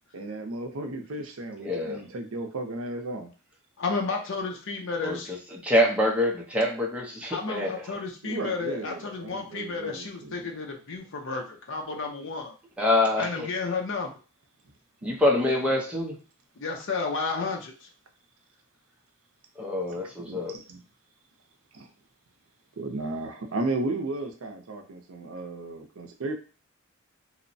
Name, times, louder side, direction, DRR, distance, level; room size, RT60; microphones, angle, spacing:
voice 1, 0.1-3.3 8.2-10.5 15.0-15.1 19.9-20.8 21.7-21.9 22.8-26.3, right 2 dB, 70° right, 4 dB, 0.5 m, -34 dB
voice 2, 1.6-2.0 5.0-7.8 12.8-13.5 15.0-16.1 19.6-20.5, left 1 dB, 5° right, -2 dB, 0.6 m, -25 dB
voice 3, 3.8-5.3 7.3-12.5 13.2-14.1 16.6-17.7, left 4 dB, 60° left, 2 dB, 0.6 m, -32 dB
2.9 x 2.0 x 2.6 m, 0.35 s
head